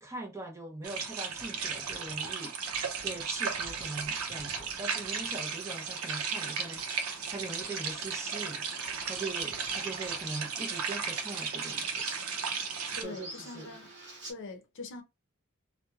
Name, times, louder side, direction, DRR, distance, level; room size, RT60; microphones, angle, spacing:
voice 1, 0.0-8.6 9.0-12.0 13.0-13.7, right 2 dB, 15° right, 0.6 m, -42 dB
sound 1, 0.8-13.0, right 5 dB, 85° right, 0.7 m, -35 dB
Bird vocalization bird call bird song, 5.5-14.3, right 2 dB, 55° right, 1.1 m, -48 dB
voice 2, 12.9-13.9 14.3-15.0, left 3 dB, 60° left, 0.7 m, -43 dB
2.9 x 2.2 x 2.3 m
head